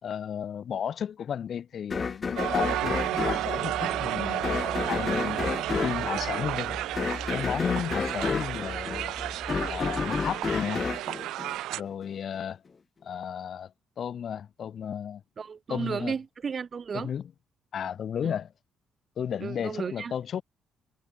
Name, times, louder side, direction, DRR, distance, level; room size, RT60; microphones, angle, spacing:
voice 1, 0.0-5.5 5.8-6.8 7.3-9.2 9.7-10.9 11.7-12.6 13.0-15.2 15.7-16.2 16.9-17.3 17.7-18.5 19.2-20.4, left 8 dB, 60° left, 1.8 m, -34 dB
sound 1, 1.9-12.1, left 5 dB, 35° left, 0.6 m, -31 dB
Crowd, 2.4-11.8, right 15 dB, 90° right, 1.3 m, -32 dB
sound 2, 2.5-10.0, left 2 dB, 15° left, 4.8 m, -42 dB
voice 2, 15.4-17.1 18.2-18.3 19.4-20.1, right 6 dB, 45° right, 1.0 m, -34 dB
cardioid pair, 90°, 0 cm